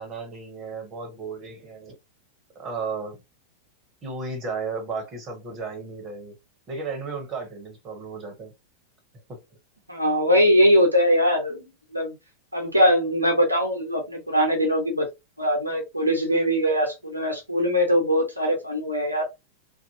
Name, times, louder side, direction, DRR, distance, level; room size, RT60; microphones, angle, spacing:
voice 1, 0.0-1.9 2.6-3.2 4.0-6.3 6.7-8.5 9.3-9.4, right 4 dB, 30° right, 1.0 m, -34 dB
voice 2, 9.9-11.6 11.9-12.1 12.5-15.1 15.4-19.3, equal, 85° right, 0.8 m, -21 dB
2.6 x 2.2 x 2.7 m
figure-of-eight pair, 90°, 0 cm